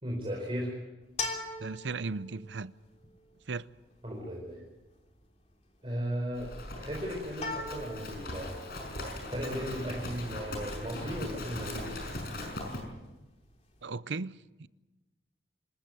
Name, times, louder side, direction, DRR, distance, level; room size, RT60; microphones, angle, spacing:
voice 1, 0.0-0.8 4.0-4.6 5.8-6.5 6.8-8.6 9.3-11.9, equal, 30° right, 4.6 m, -36 dB
sound 1, 1.0-13.9, left 3 dB, 35° left, 3.2 m, -43 dB
voice 2, 1.6-2.7 3.5-3.7 13.8-14.3 14.6-14.7, right 4 dB, 75° right, 0.7 m, -36 dB
Livestock farm animals working animals, 6.3-12.8, left 1 dB, 55° left, 5.7 m, -39 dB
26.5 x 14.5 x 9.1 m
head